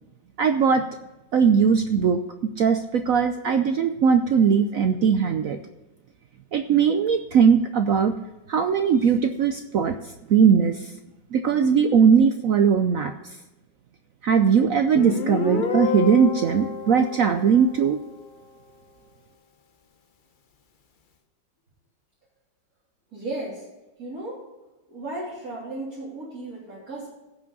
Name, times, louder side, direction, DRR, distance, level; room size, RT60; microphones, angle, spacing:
voice 1, 0.4-0.9 1.3-5.6 6.5-8.1 8.5-10.0 10.3-10.9 11.3-13.1 14.2-18.0, right 6 dB, 65° right, 7 dB, 0.8 m, -20 dB
Guitar, 14.9-18.4, left 5 dB, 50° left, 0.6 m, -29 dB
voice 2, 23.1-23.7 24.0-24.4 24.9-27.1, right 2 dB, 50° right, -9 dB, 3.6 m, -35 dB
16.5 x 6.0 x 4.0 m, 1.1 s
omnidirectional pair, 2.0 m